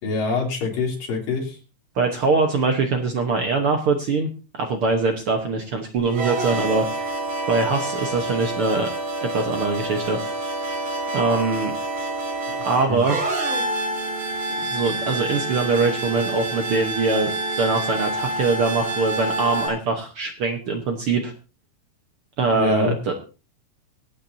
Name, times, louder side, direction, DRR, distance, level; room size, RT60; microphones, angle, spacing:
voice 1, 0.0-1.6 12.9-13.0 22.5-22.9, left 4 dB, 85° left, -1 dB, 4.8 m, -25 dB
voice 2, 1.9-7.1 7.5-8.9 9.2-10.2 11.1-11.7 12.6-13.2 14.7-17.3 17.6-21.3 22.4-23.1, right 3 dB, 60° right, 4 dB, 1.5 m, -22 dB
sound 1, 6.0-19.7, right 2 dB, 85° right, 5.3 m, -28 dB
25.0 x 8.8 x 2.8 m, 0.34 s
omnidirectional pair, 3.8 m